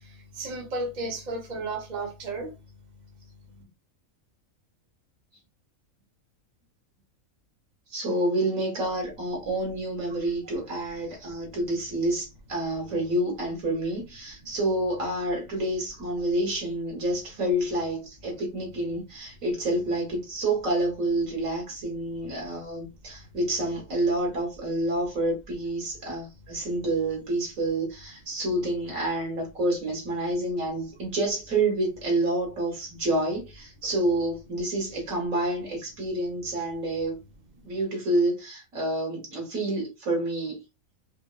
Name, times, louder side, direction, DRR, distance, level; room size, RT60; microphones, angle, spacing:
voice 1, 0.1-2.5, right 2 dB, 40° right, 0.9 m, -33 dB
voice 2, 7.9-37.2 37.6-40.6, right 1 dB, 75° right, 1.9 m, -28 dB
4.5 x 2.1 x 2.2 m
omnidirectional pair, 1.4 m